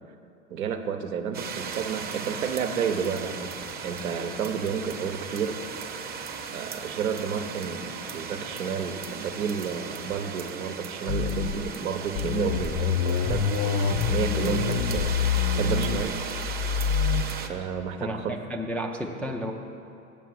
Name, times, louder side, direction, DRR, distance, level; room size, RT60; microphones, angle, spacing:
voice 1, 0.5-3.6 3.8-5.6 6.5-15.1 15.6-16.2 17.5-18.4, right 6 dB, 90° right, 6 dB, 0.9 m, -31 dB
sound 1, 1.3-17.5, right 6 dB, 25° right, 0.7 m, -37 dB
sound 2, 11.1-11.7 12.2-17.2, left 6 dB, 50° left, 0.7 m, -26 dB
voice 2, 18.0-19.5, equal, 5° left, 0 dB, 0.3 m, -32 dB
7.2 x 6.9 x 7.6 m, 2.6 s
hypercardioid pair, 100°, 41 cm